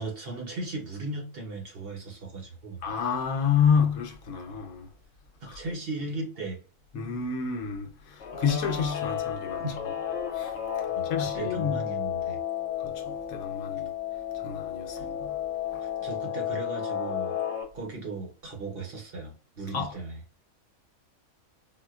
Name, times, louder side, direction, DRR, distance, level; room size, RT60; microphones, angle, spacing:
voice 1, 0.0-2.8 5.4-6.6 9.6-10.0 10.9-12.4 14.9-15.1 15.8-17.4 17.7-20.2, right 3 dB, 50° right, 0.9 m, -37 dB
voice 2, 2.8-4.9 5.5-5.6 6.9-9.7 10.3-10.5 11.0-11.8 12.8-13.9 14.3-15.4 15.7-15.8 19.7-19.9, left 7 dB, 80° left, 1.2 m, -29 dB
Guitar, 8.2-17.6, left 10 dB, 55° left, 0.8 m, -32 dB
4.0 x 2.2 x 2.3 m
omnidirectional pair, 1.5 m